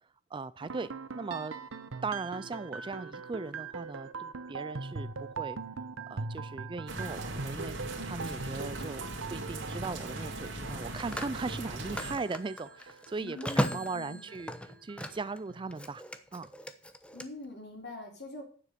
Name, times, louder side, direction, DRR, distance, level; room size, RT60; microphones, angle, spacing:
voice 1, 0.3-1.6 2.0-5.6 6.1-7.8 8.0-9.0 9.3-14.5 14.8-16.0 16.3-16.5, right 4 dB, 25° right, 16 dB, 0.4 m, -38 dB
sound 1, 0.6-15.8, right 4 dB, 85° right, 0.9 m, -42 dB
sound 2, 6.9-12.2, right 2 dB, 65° right, 2.7 m, -39 dB
Telephone, 8.4-8.6 10.5-15.4 15.7-17.3, equal, 5° left, 0.9 m, -37 dB
voice 2, 13.2-14.3 17.1-18.4, left 2 dB, 60° left, 1 dB, 4.4 m, -44 dB
9.7 x 7.5 x 6.8 m, 0.42 s
head